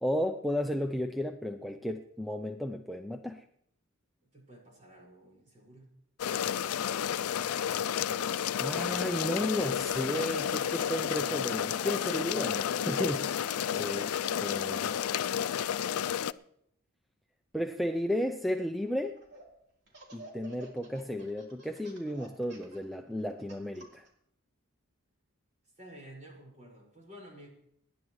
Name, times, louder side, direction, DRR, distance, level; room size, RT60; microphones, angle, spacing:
voice 1, 0.0-3.4 8.6-13.3 13.7-14.1 14.4-15.0 17.5-19.1 20.1-24.1, equal, ahead, 4 dB, 0.5 m, -33 dB
voice 2, 4.3-5.9 25.8-27.5, equal, 35° right, -3 dB, 5.7 m, -51 dB
sound 1, 6.2-16.3, left 9 dB, 90° left, 0.4 m, -31 dB
Laughter, 18.9-19.5 19.9-24.1, right 2 dB, 50° right, 3.7 m, -51 dB
28.0 x 10.5 x 3.2 m, 0.73 s
head